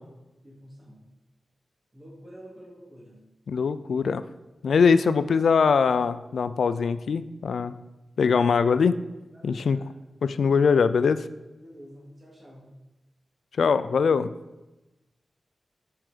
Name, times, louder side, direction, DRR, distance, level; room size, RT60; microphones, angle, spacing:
voice 1, 0.4-1.0 1.9-3.2 9.3-10.0 11.6-12.7, equal, 25° right, -4 dB, 2.4 m, -48 dB
voice 2, 3.5-4.2 4.6-7.7 8.2-8.9 9.4-9.8 10.2-11.3 13.6-14.3, left 5 dB, 85° left, 13 dB, 0.3 m, -22 dB
7.6 x 4.8 x 5.0 m, 1.0 s
wide cardioid pair, 150°, 0 cm